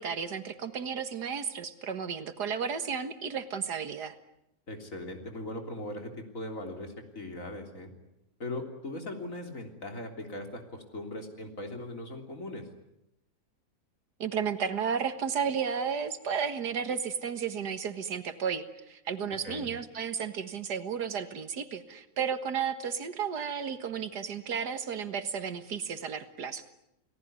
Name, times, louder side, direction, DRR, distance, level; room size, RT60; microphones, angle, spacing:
voice 1, 0.0-4.2 14.2-26.6, right 7 dB, 90° right, 10 dB, 2.2 m, -33 dB
voice 2, 4.7-7.9 8.4-12.6 19.4-19.7, left 1 dB, 55° left, 4 dB, 3.8 m, -39 dB
29.5 x 18.5 x 9.7 m, 0.84 s
omnidirectional pair, 1.7 m